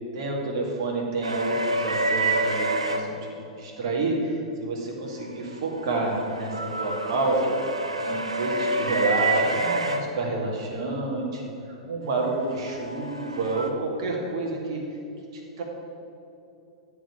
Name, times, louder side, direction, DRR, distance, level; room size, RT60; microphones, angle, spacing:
voice 1, 0.1-7.5 8.0-11.5 11.9-14.8 15.3-15.6, right 2 dB, 50° right, -1 dB, 2.2 m, -29 dB
sound 1, 1.2-3.0 5.4-10.0 12.4-13.7, right 2 dB, 80° right, 0.9 m, -28 dB
11.5 x 5.0 x 7.3 m, 2.8 s
figure-of-eight pair, 100°, 3 cm